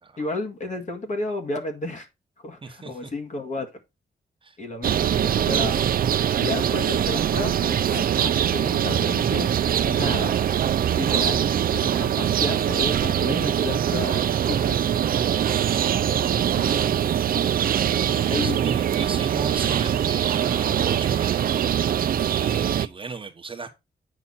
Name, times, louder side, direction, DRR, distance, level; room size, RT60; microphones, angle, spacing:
voice 1, 0.2-2.1 2.4-3.7 4.6-5.8 6.4-9.5 9.8-10.4 10.9-14.2 14.5-14.8 16.4-16.8 18.3-18.6, left 2 dB, 45° left, 1.8 m, -32 dB
voice 2, 2.6-3.1 4.4-4.6 6.6-6.9 17.5-23.8, right 4 dB, 30° right, 1.1 m, -38 dB
sound 1, 4.8-22.9, right 9 dB, 55° right, 0.5 m, -23 dB
8.7 x 5.9 x 4.0 m
wide cardioid pair, 175°, 18 cm